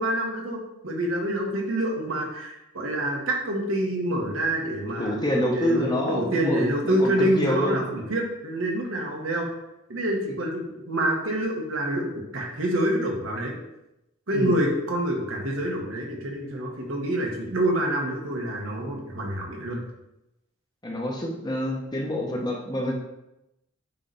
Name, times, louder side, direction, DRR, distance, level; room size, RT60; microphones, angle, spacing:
voice 1, 0.0-9.5 9.9-13.5 14.3-19.8, right 1 dB, 80° right, 0 dB, 1.5 m, -27 dB
voice 2, 5.0-7.8 14.3-14.6 20.8-23.0, left 1 dB, 20° left, 0 dB, 0.9 m, -27 dB
8.6 x 3.3 x 4.1 m, 0.89 s
head